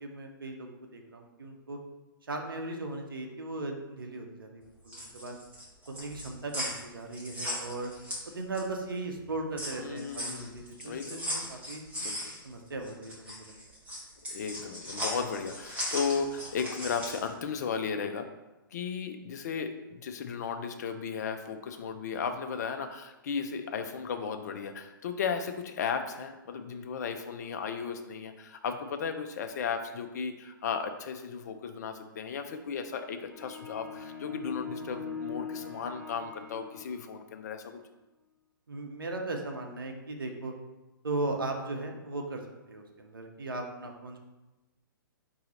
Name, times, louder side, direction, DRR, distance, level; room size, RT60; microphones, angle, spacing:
voice 1, 0.0-1.8 2.3-5.4 5.9-7.9 8.3-11.8 12.4-13.5 38.7-40.5 41.0-42.4 42.7-44.2, right 2 dB, 70° right, 3 dB, 0.7 m, -37 dB
sound 1, 4.7-8.8 9.2-17.3, equal, 10° right, 1.3 m, -38 dB
voice 2, 9.8-11.2 12.0-12.2 14.3-18.3 18.7-37.8, left 6 dB, 50° left, 7 dB, 0.5 m, -35 dB
sound 2, 33.3-37.2, left 6 dB, 5° left, 0.6 m, -41 dB
3.9 x 2.7 x 4.2 m, 1.1 s
figure-of-eight pair, 120°, 12 cm